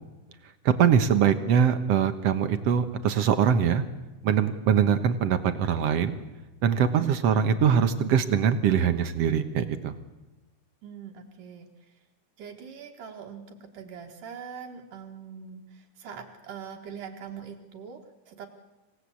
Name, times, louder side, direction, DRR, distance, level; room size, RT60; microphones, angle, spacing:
voice 1, 0.7-3.8 4.2-6.2 6.6-9.9, right 8 dB, 60° right, 10 dB, 1.9 m, -23 dB
voice 2, 10.8-11.7 12.4-18.5, right 7 dB, 75° right, 2 dB, 3.2 m, -42 dB
26.5 x 17.5 x 8.4 m, 1.1 s
omnidirectional pair, 3.8 m